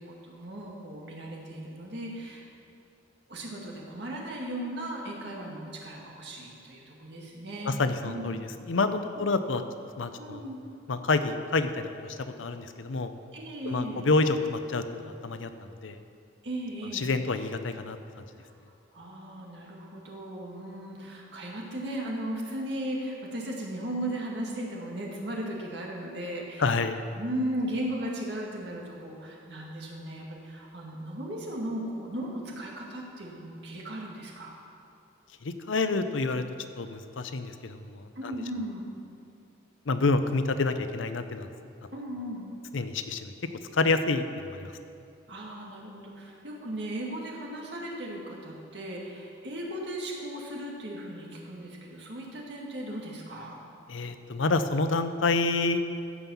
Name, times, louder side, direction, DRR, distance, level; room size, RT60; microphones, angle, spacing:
voice 1, 0.0-2.4 3.3-7.8 8.1-8.5 10.2-10.6 13.3-14.1 16.4-17.1 18.4-18.6 18.9-26.8 27.2-34.6 38.2-38.9 41.9-42.6 45.3-53.6, right 1 dB, 60° right, -2 dB, 2.0 m, -36 dB
voice 2, 7.6-8.4 8.7-9.6 10.0-10.4 10.9-13.1 13.6-15.5 15.8-16.0 16.9-18.0 26.6-27.0 35.4-36.4 36.8-38.3 39.9-41.5 41.8-41.9 42.7-43.3 43.7-44.7 53.9-55.8, left 3 dB, 85° left, 9 dB, 0.7 m, -28 dB
15.0 x 5.6 x 7.0 m, 2.5 s
head